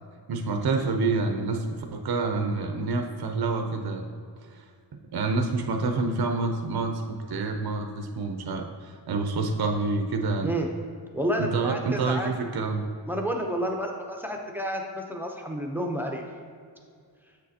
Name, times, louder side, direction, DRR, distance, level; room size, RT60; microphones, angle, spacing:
voice 1, 0.3-4.1 5.1-10.5 11.4-12.8, right 3 dB, 55° right, 5 dB, 0.6 m, -27 dB
voice 2, 11.1-12.3 13.1-16.2, equal, 5° right, 1 dB, 0.6 m, -30 dB
7.9 x 6.4 x 2.8 m, 2.2 s
wide cardioid pair, 120°, 44 cm